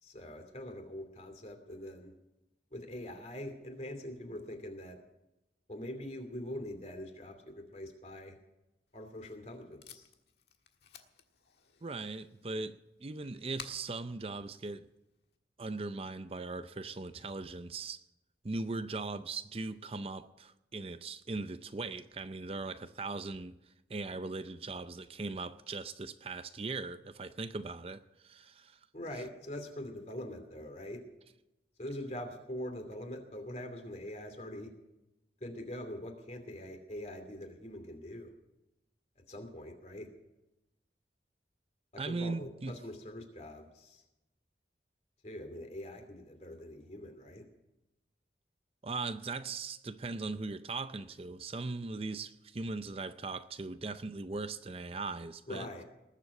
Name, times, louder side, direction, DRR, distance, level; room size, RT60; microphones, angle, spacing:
voice 1, 0.0-2.1 2.7-5.0 5.7-8.3 8.9-10.1 28.9-31.0 31.8-34.7 35.4-38.3 39.3-40.1 41.9-44.0 45.2-47.4 55.5-55.8, left 1 dB, 40° left, 2.7 m, -43 dB
Packing tape duct tape, 8.9-15.4, left 7 dB, 70° left, 1.5 m, -55 dB
voice 2, 11.8-14.9 15.6-18.0 18.4-23.6 23.9-28.8 42.0-42.8 48.8-55.7, right 3 dB, 35° right, 0.5 m, -39 dB
20.0 x 7.6 x 8.3 m
head